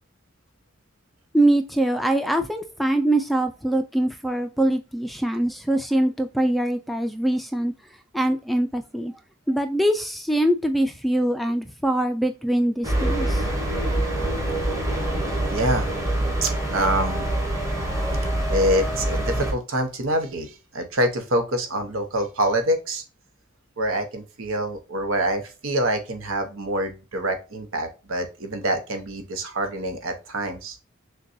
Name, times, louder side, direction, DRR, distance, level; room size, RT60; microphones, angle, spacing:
voice 1, 1.3-7.7 8.1-9.1 9.5-13.4, right 1 dB, ahead, 0.3 m, -23 dB
sound 1, 12.8-19.5, right 1 dB, 15° right, 1.0 m, -25 dB
voice 2, 15.5-15.9 16.4-17.3 18.5-23.0 23.8-30.8, right 1 dB, 85° right, 0.9 m, -26 dB
6.4 x 2.3 x 2.5 m
head